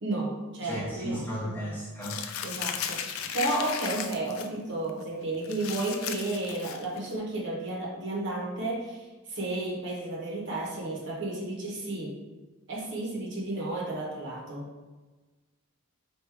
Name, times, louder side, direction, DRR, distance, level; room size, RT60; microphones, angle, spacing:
voice 1, 0.0-1.2 2.4-12.2 12.7-14.7, right 2 dB, 55° right, -3 dB, 1.0 m, -32 dB
voice 2, 0.6-2.3, equal, 10° left, -5 dB, 0.7 m, -34 dB
Crumpling crinkling, 2.0-4.5 4.9-5.0 5.4-7.1, left 8 dB, 75° left, 0.4 m, -35 dB
3.6 x 2.5 x 4.6 m, 1.3 s
head